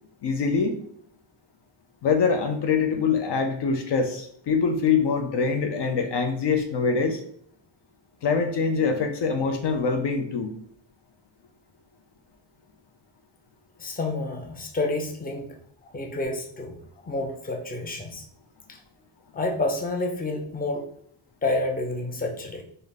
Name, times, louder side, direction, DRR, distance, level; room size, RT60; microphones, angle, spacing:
voice 1, 0.2-0.8 2.0-7.2 8.2-10.5, left 5 dB, 60° left, 5 dB, 0.6 m, -24 dB
voice 2, 13.8-15.5 15.9-16.8 17.0-18.2 19.3-20.9 21.4-22.6, left 2 dB, 20° left, 2 dB, 0.6 m, -29 dB
3.7 x 2.2 x 3.5 m, 0.63 s
cardioid pair, 90°, 46 cm